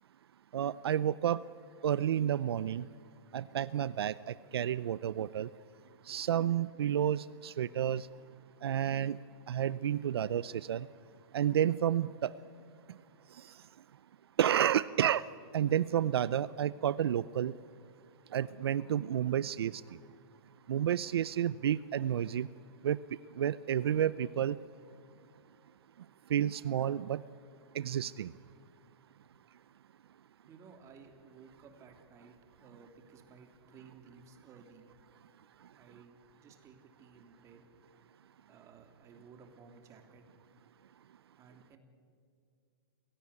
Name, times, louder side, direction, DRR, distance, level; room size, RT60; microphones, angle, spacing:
voice 1, 0.5-1.4 1.8-2.9 3.3-5.5 6.1-8.1 8.6-9.2 9.5-10.9 11.3-12.3 14.4-15.2 15.5-17.5 18.3-19.8 20.7-22.5 22.8-23.0 23.4-24.6 26.3-27.2 27.7-28.3, right 10 dB, 80° right, 18 dB, 0.6 m, -30 dB
voice 2, 30.5-34.9 35.8-37.7 38.5-40.2 41.4-41.8, right 5 dB, 25° right, 5 dB, 2.9 m, -57 dB
28.0 x 17.0 x 9.7 m, 2.2 s
hypercardioid pair, 145°, 13 cm